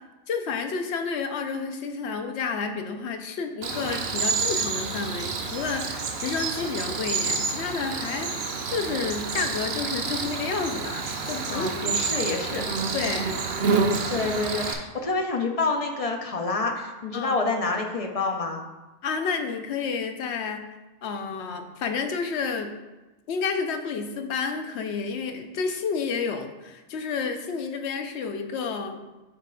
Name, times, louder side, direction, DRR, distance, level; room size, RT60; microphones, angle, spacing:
voice 1, 0.3-8.3 8.7-11.9 12.9-13.4 14.2-14.3 17.1-17.4 19.0-20.6 21.0-22.7 23.3-29.0, left 5 dB, 65° left, 5 dB, 0.9 m, -30 dB
Cricket, 3.6-14.7, right 4 dB, 60° right, 0.8 m, -28 dB
voice 2, 11.5-12.6 13.6-13.7 14.1-18.6, left 3 dB, 45° left, 2 dB, 0.5 m, -28 dB
8.7 x 3.2 x 3.8 m, 1.1 s
omnidirectional pair, 1.3 m